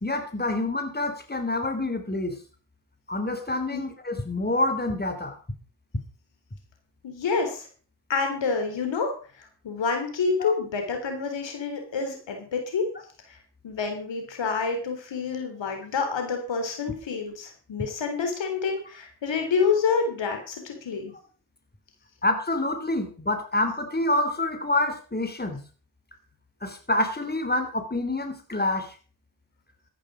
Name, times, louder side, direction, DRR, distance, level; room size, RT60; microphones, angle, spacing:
voice 1, 0.0-2.4 3.1-5.4 10.4-10.5 22.2-25.6 26.6-28.9, left 2 dB, 20° left, 7 dB, 3.4 m, -27 dB
voice 2, 7.0-7.7 8.1-12.9 13.3-13.4 13.6-21.1, left 5 dB, 85° left, 5 dB, 3.9 m, -28 dB
14.0 x 10.0 x 5.0 m, 0.38 s
cardioid pair, 50°, 43 cm